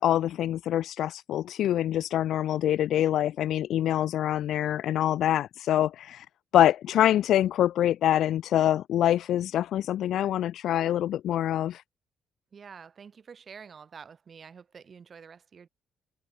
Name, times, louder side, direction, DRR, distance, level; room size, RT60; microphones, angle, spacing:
voice 1, 0.0-6.3 6.5-11.8, left 11 dB, 75° left, 0.9 m, -25 dB
voice 2, 12.5-15.7, right 6 dB, 45° right, 6.6 m, -48 dB
cardioid pair, 90°, 0 cm